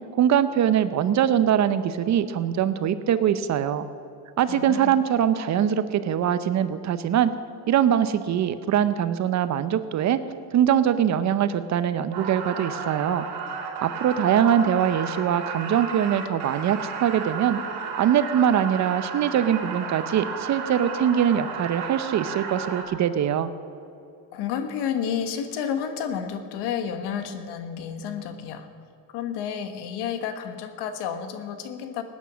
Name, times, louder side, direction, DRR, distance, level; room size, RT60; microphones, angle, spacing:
voice 1, 0.2-3.9 4.4-7.3 7.7-10.2 10.5-13.3 13.8-17.6 18.0-23.5, right 9 dB, 40° right, 13 dB, 0.7 m, -22 dB
voice 2, 4.5-4.9 24.3-28.7 29.1-32.0, left 8 dB, 65° left, 9 dB, 1.5 m, -30 dB
sound 1, 12.1-22.8, right 6 dB, 65° right, 2.8 m, -33 dB
18.0 x 9.6 x 6.2 m, 2.7 s
cardioid pair, 125°, 43 cm